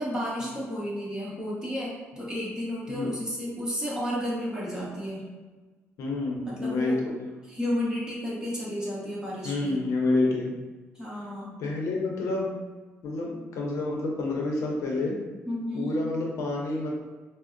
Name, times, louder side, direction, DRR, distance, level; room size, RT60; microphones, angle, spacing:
voice 1, 0.0-5.3 6.4-7.0 7.5-9.8 10.9-11.6 15.5-15.9, equal, 15° right, -6 dB, 1.1 m, -32 dB
voice 2, 6.0-7.2 9.4-10.5 11.6-12.5 13.0-15.2 15.7-16.9, left 2 dB, 75° left, -1 dB, 0.6 m, -28 dB
4.4 x 2.1 x 2.5 m, 1.3 s
cardioid pair, 105°, 5 cm